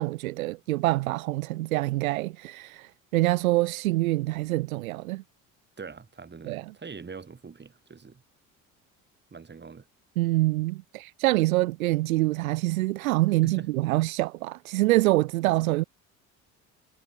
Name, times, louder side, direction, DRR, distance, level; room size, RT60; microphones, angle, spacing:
voice 1, 0.0-5.2 6.4-6.7 10.2-15.8, right 19 dB, 70° right, 0.7 m, -25 dB
voice 2, 5.8-8.2 9.3-9.9 13.4-13.7 15.6-15.7, right 5 dB, 25° right, 3.6 m, -43 dB
figure-of-eight pair, 55°, 43 cm